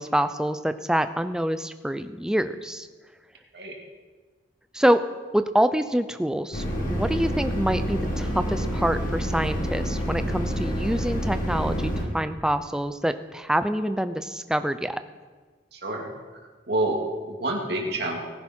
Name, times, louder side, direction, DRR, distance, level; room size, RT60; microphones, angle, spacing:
voice 1, 0.0-2.9 4.7-5.0 5.3-6.6 6.9-15.0, equal, 5° right, 10 dB, 0.5 m, -26 dB
sound 1, 6.5-12.0, equal, 45° left, 2.3 m, -28 dB
voice 2, 15.7-16.1 16.7-18.2, right 1 dB, 60° right, 1 dB, 2.4 m, -28 dB
19.0 x 11.0 x 4.4 m, 1.4 s
head